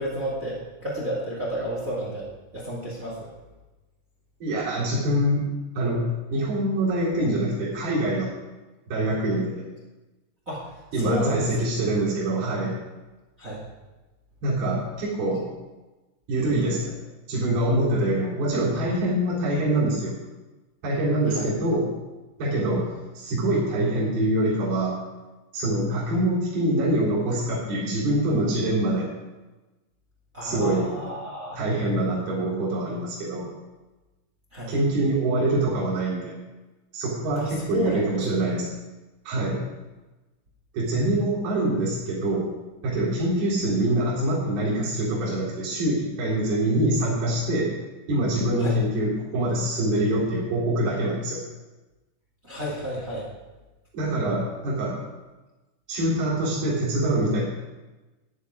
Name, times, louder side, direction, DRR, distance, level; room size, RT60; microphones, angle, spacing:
voice 1, 0.0-3.3 10.4-10.7 11.0-11.5 13.4-13.6 21.3-21.5 30.3-31.6 34.5-34.7 37.3-38.5 48.6-48.8 52.4-53.3, equal, 40° right, -4 dB, 1.2 m, -31 dB
voice 2, 4.4-5.5 5.8-6.1 6.3-8.3 8.9-9.6 10.9-12.7 14.4-15.5 16.3-17.0 17.3-20.2 20.8-21.9 22.4-25.0 25.5-29.1 30.4-30.9 31.6-33.5 34.7-36.3 36.9-38.7 39.3-39.6 40.7-42.5 42.8-47.7 48.1-51.4 53.9-55.0 55.9-57.4, right 1 dB, 55° right, -7 dB, 5.3 m, -24 dB
13.0 x 10.5 x 4.8 m, 1.1 s
omnidirectional pair, 5.6 m